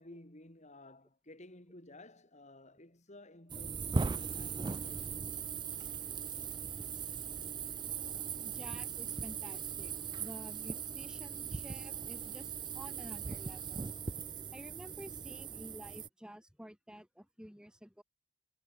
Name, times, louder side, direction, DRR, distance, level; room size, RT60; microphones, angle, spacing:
voice 1, 0.0-5.2, left 1 dB, 30° left, 3.1 m, -55 dB
sound 1, 3.5-16.1, right 5 dB, 20° right, 0.4 m, -39 dB
voice 2, 8.4-13.9 14.5-18.0, equal, 5° right, 2.1 m, -51 dB
head